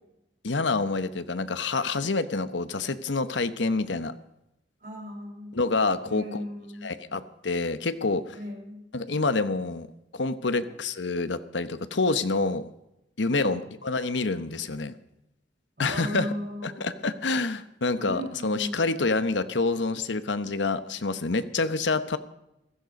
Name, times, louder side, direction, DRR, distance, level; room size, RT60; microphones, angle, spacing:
voice 1, 0.4-4.1 5.5-6.4 6.8-8.3 8.9-9.9 10.1-12.7 13.2-14.9 15.8-16.3 16.6-22.2, left 3 dB, 85° left, 12 dB, 1.0 m, -27 dB
voice 2, 4.8-5.6 6.0-6.9 8.3-8.8 10.5-10.8 13.3-13.7 15.8-17.1 18.0-18.9, left 1 dB, 50° right, 2 dB, 4.6 m, -37 dB
15.5 x 14.5 x 5.3 m, 0.87 s
head